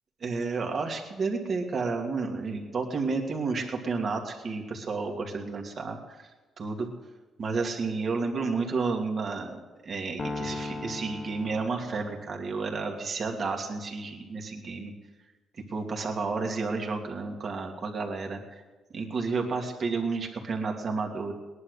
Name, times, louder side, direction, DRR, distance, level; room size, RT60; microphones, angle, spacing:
voice 1, 0.2-6.0 6.6-6.9 7.4-14.9 15.7-18.4 18.9-21.3, right 4 dB, 50° right, 2 dB, 2.6 m, -31 dB
sound 1, 10.2-12.6, left 2 dB, 30° left, 1.5 m, -37 dB
19.0 x 11.0 x 6.7 m, 1.2 s
cardioid pair, 90°, 0 cm